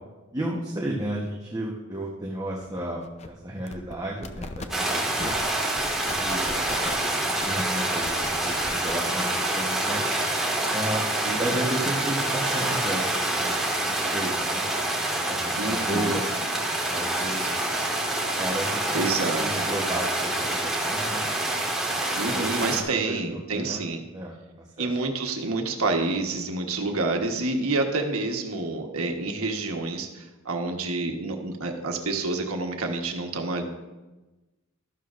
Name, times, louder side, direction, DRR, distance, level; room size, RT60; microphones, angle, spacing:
voice 1, 0.3-5.3 6.1-6.5 7.1-10.0 10.7-11.0 11.4-14.7 15.1-16.3 16.9-17.9 18.4-19.1 19.4-21.3 22.3-22.7 23.1-23.8 24.1-24.9, right 1 dB, 20° right, -3 dB, 1.1 m, -33 dB
sound 1, 2.6-2.7 3.0-3.3 3.7-4.0 4.2-4.7 5.2-5.4 5.8-7.1 7.4-7.6 8.0-9.1, left 3 dB, 30° left, 0.6 m, -37 dB
sound 2, 4.7-22.8, right 1 dB, ahead, 1.8 m, -27 dB
voice 2, 6.3-6.7 11.3-11.4 15.5-16.2 17.4-17.5 18.9-19.7 22.1-24.0 24.8-33.6, right 3 dB, 90° right, 3 dB, 1.3 m, -28 dB
12.5 x 12.0 x 2.5 m, 1.1 s
head